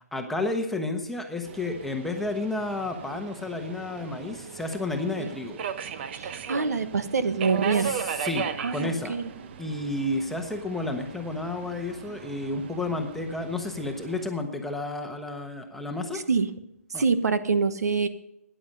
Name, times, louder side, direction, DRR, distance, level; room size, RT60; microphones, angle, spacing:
voice 1, 0.1-5.6 7.8-9.2 9.6-16.2 16.9-17.0, left 2 dB, 5° left, 3 dB, 1.1 m, -31 dB
Subway metro underground, 1.4-14.3, right 8 dB, 45° right, 1.0 m, -38 dB
voice 2, 6.1-7.9 8.6-9.3 16.1-16.5 16.9-18.1, right 4 dB, 85° right, 11 dB, 1.2 m, -26 dB
14.0 x 10.0 x 5.4 m, 0.79 s
hypercardioid pair, 150°, 8 cm